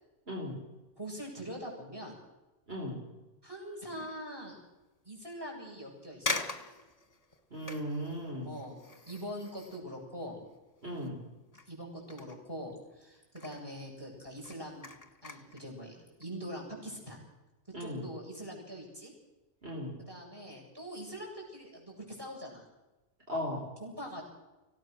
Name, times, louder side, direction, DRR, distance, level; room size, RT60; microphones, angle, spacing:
voice 1, 1.0-2.2 3.4-4.5 5.0-6.4 8.4-10.4 11.7-14.9 15.2-17.2 17.8-19.1 20.1-22.6 23.8-24.2, equal, 20° right, 0 dB, 7.8 m, -43 dB
sound 1, 3.9-4.3 4.8-4.9 5.7-5.8 6.2-11.2 11.5-13.0 13.3-13.7 14.1-15.7 16.1-16.2, left 2 dB, 30° left, 1.7 m, -42 dB
voice 2, 7.5-8.5 10.8-11.2 17.7-18.0 19.6-19.9 23.3-23.6, equal, 55° right, -2 dB, 4.5 m, -36 dB
25.5 x 17.5 x 6.7 m, 1.1 s
omnidirectional pair, 1.3 m